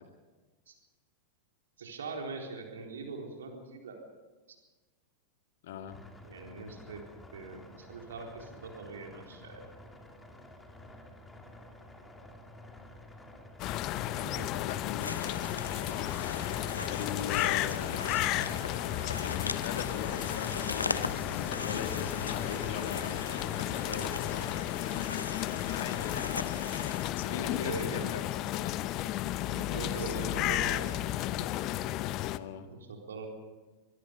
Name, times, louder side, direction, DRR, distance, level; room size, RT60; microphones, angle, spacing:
voice 1, 1.8-4.0 6.2-7.1 7.3-9.6 14.1-14.5 27.3-28.1 29.4-31.1 31.4-31.5 32.1-32.2 32.7-33.3, right 4 dB, 65° right, 2 dB, 4.0 m, -42 dB
voice 2, 5.6-6.0 14.5-15.1 15.9-16.1 16.9-18.1 19.2-23.3 23.8-24.5 25.7-26.4 27.2-28.2 28.5-29.0 29.9-30.4 30.7-31.0 32.3-32.7, left 8 dB, 55° left, 7 dB, 1.9 m, -40 dB
sound 1, 5.9-24.5, left 1 dB, 10° left, 2.8 m, -49 dB
sound 2, 13.6-32.4, left 15 dB, 40° left, 0.7 m, -33 dB
sound 3, 15.0-27.1, left 3 dB, 80° left, 0.8 m, -39 dB
25.0 x 21.0 x 5.2 m, 1.3 s
figure-of-eight pair, 90°, 0 cm